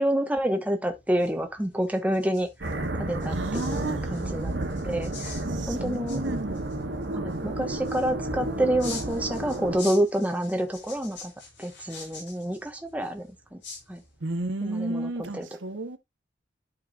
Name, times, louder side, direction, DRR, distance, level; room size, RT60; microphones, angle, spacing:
voice 1, 0.0-6.2 7.1-11.3 11.6-13.6 13.9-14.0 14.6-15.5, right 1 dB, 10° right, 1.0 m, -28 dB
sound 1, 0.8-14.4, left 4 dB, 70° left, 4.8 m, -46 dB
sound 2, 2.6-9.8, right 2 dB, 65° right, 1.3 m, -31 dB
voice 2, 3.3-4.0 5.5-6.6 14.2-16.0, right 2 dB, 80° right, 1.0 m, -32 dB
12.0 x 4.7 x 2.4 m
head